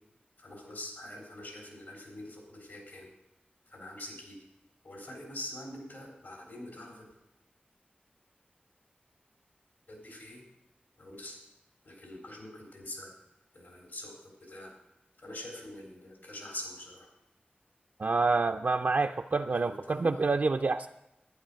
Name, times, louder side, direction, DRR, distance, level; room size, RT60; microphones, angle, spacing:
voice 1, 0.4-3.1 3.7-4.4 4.8-7.1 9.9-10.4 11.0-11.4 11.8-13.1 13.5-14.7 15.2-17.1 19.6-20.3, left 1 dB, 75° left, -1 dB, 3.8 m, -44 dB
voice 2, 18.0-20.9, right 3 dB, 60° right, 5 dB, 0.4 m, -27 dB
11.5 x 10.0 x 5.1 m, 0.90 s
wide cardioid pair, 75°, 4 cm